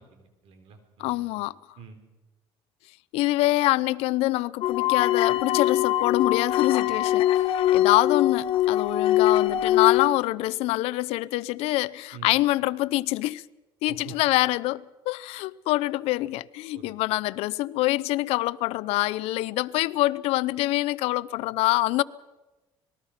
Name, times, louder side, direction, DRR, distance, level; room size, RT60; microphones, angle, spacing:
voice 1, 0.0-1.4 1.8-2.0 12.1-12.3 13.9-14.2 16.7-17.0, right 7 dB, 70° right, 4.0 m, -46 dB
voice 2, 1.0-1.5 3.1-7.4 7.7-13.4 13.8-22.0, left 18 dB, 75° left, 0.6 m, -25 dB
sound 1, 4.6-10.1, left 13 dB, 60° left, 1.4 m, -22 dB
26.5 x 20.5 x 5.8 m
cardioid pair, 125°, 10 cm